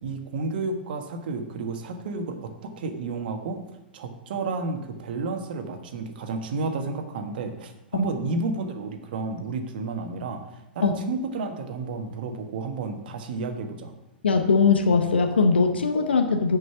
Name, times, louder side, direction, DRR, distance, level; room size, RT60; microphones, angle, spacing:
voice 1, 0.0-3.6 3.9-10.4 10.7-13.9, right 3 dB, 65° right, 6 dB, 1.4 m, -31 dB
voice 2, 14.2-16.6, left 4 dB, 85° left, 6 dB, 0.8 m, -20 dB
9.4 x 5.3 x 5.9 m, 0.94 s
hypercardioid pair, 105°, 6 cm